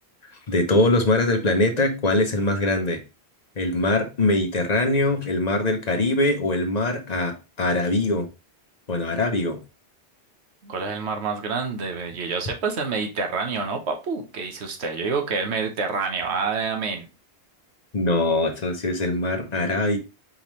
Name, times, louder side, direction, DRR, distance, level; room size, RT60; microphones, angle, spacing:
voice 1, 0.5-3.0 3.6-8.3 8.9-9.6 17.9-20.0, left 2 dB, 40° left, 0.9 m, -22 dB
voice 2, 10.6-17.1, right 4 dB, 75° right, 1.2 m, -27 dB
4.9 x 3.5 x 3.0 m
omnidirectional pair, 1.1 m